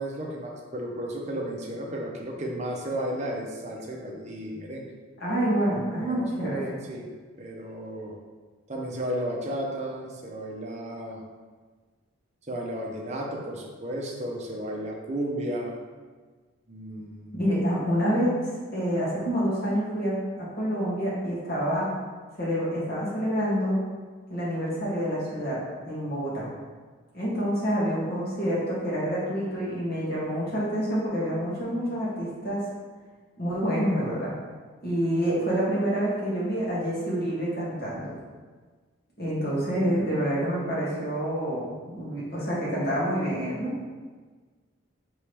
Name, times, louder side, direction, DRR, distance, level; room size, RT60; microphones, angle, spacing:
voice 1, 0.0-4.9 6.0-6.6 6.9-7.1 7.4-8.1 8.7-11.2 12.5-15.7 16.7-17.4, right 1 dB, 35° right, -1 dB, 0.6 m, -33 dB
voice 2, 5.2-6.8 17.3-21.9 22.4-23.8 24.3-25.6 25.9-26.5 27.1-32.6 33.4-34.3 34.8-38.1 39.2-43.7, equal, 50° left, -8 dB, 1.5 m, -27 dB
4.6 x 3.0 x 3.4 m, 1.4 s
head